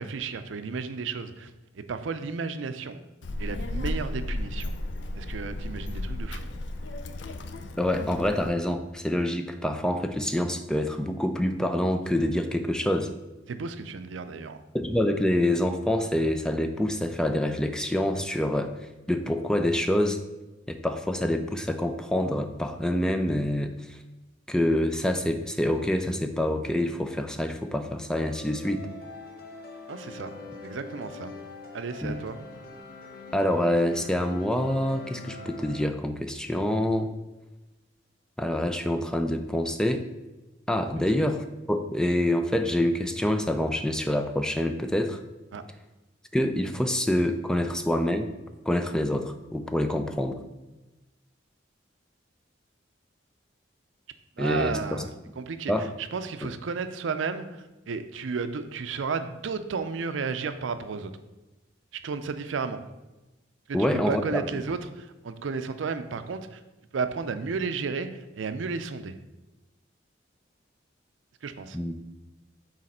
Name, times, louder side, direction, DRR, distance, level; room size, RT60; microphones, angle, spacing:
voice 1, 0.0-3.0 3.4-4.7 5.1-6.4 13.5-14.6 29.9-30.3 30.6-31.3 31.7-32.4 45.5-45.6 54.4-55.1 55.4-61.1 61.9-62.8 63.7-66.6 66.9-69.2 71.4-71.8, right 5 dB, 85° right, 10 dB, 0.5 m, -33 dB
Child speech kid speaking, 3.2-8.5, left 1 dB, 70° left, 0.5 m, -34 dB
voice 2, 7.8-13.1 14.7-18.7 19.1-20.2 20.7-24.0 24.5-28.9 32.0-32.2 33.3-37.1 38.4-40.0 40.7-45.2 46.3-48.3 48.7-50.4 54.4-55.0 55.7-55.9 63.7-64.5 71.7-71.9, left 1 dB, 5° left, 7 dB, 0.3 m, -26 dB
sound 1, 28.2-35.9, left 3 dB, 55° left, 0.9 m, -43 dB
6.4 x 4.1 x 4.2 m, 1.1 s
head